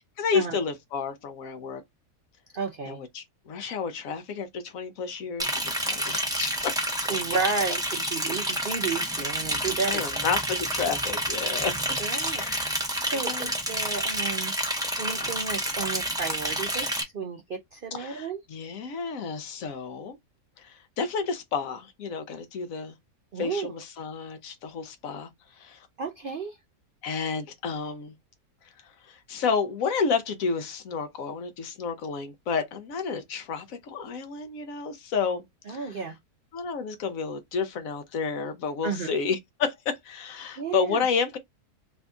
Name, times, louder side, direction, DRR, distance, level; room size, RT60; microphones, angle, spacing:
voice 1, 0.2-1.8 2.9-7.1 9.5-9.6 9.9-11.7 12.3-12.9 13.3-13.5 17.9-20.2 20.6-22.9 23.4-25.3 25.6-25.8 27.0-28.1 29.0-35.9 36.5-41.4, left 5 dB, 65° left, 1.0 m, -31 dB
voice 2, 2.5-3.0 7.1-10.2 12.0-14.5 15.0-18.4 23.3-23.7 26.0-26.6 35.7-36.2 38.8-39.1 40.6-41.0, right 5 dB, 65° right, 0.5 m, -32 dB
Liquid, 5.4-17.0, right 1 dB, 5° right, 0.4 m, -29 dB
2.8 x 2.7 x 3.4 m
omnidirectional pair, 1.6 m